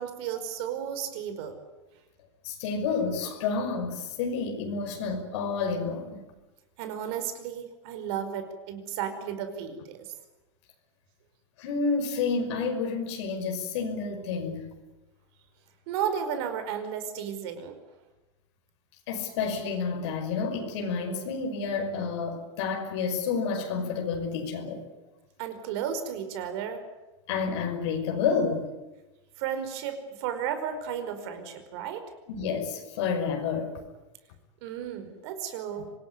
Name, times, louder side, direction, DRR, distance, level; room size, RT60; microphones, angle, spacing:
voice 1, 0.0-1.6 6.8-10.1 15.9-17.8 25.4-26.9 29.4-32.1 34.6-35.9, right 8 dB, 60° right, 5.0 m, -33 dB
voice 2, 2.4-6.3 11.6-14.7 19.1-24.9 27.3-28.7 32.3-33.8 35.8-35.9, left 5 dB, 70° left, 5.5 m, -30 dB
26.0 x 19.0 x 9.7 m
supercardioid pair, 140°, 15 cm